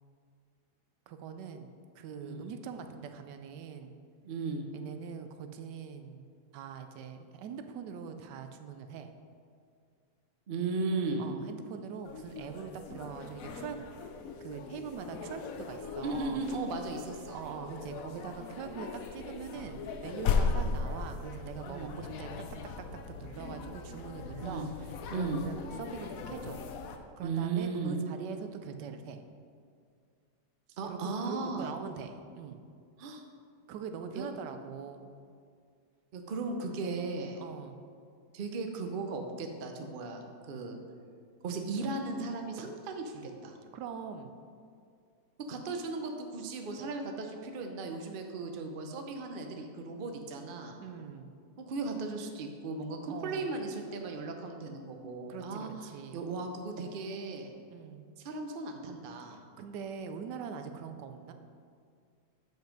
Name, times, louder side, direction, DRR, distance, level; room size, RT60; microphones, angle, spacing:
voice 1, 1.1-4.0 4.7-6.3 6.5-9.1 11.2-13.8 14.4-15.4 15.7-16.4 17.3-22.3 22.6-26.6 27.2-29.2 30.8-32.6 33.7-35.1 37.4-37.8 43.7-44.3 50.8-51.3 53.1-53.5 55.3-56.2 57.7-58.0 59.2-61.3, right 6 dB, 80° right, 7 dB, 1.2 m, -43 dB
voice 2, 2.2-2.5 4.2-4.7 10.5-11.3 16.0-17.4 21.6-21.9 24.4-24.7 25.1-25.4 27.2-28.0 30.8-31.7 33.0-33.2 34.1-34.3 36.1-37.4 38.3-40.8 41.4-43.6 45.5-50.8 51.6-55.7 56.1-57.5 58.2-59.4, right 3 dB, 60° right, 4 dB, 0.5 m, -36 dB
sound 1, 12.0-27.0, left 5 dB, 65° left, 0.9 m, -38 dB
7.5 x 5.4 x 5.2 m, 2.2 s
omnidirectional pair, 1.9 m